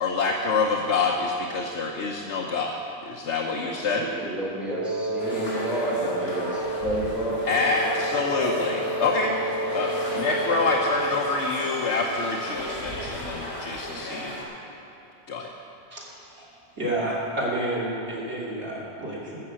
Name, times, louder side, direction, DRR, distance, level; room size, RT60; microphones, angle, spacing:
voice 1, 0.0-2.8 3.0-4.1 7.5-9.4 9.7-14.5 15.3-15.5, left 3 dB, 80° left, -1 dB, 1.2 m, -26 dB
voice 2, 3.6-7.4, right 1 dB, ahead, -6 dB, 2.7 m, -31 dB
Wind instrument woodwind instrument, 4.7-11.4, right 2 dB, 25° right, 0.5 m, -31 dB
sound 1, 5.2-14.4, left 1 dB, 65° left, 3.1 m, -34 dB
voice 3, 15.9-16.5 16.8-19.4, right 1 dB, 85° right, -7 dB, 3.5 m, -30 dB
14.5 x 6.8 x 7.6 m, 3.0 s
omnidirectional pair, 1.1 m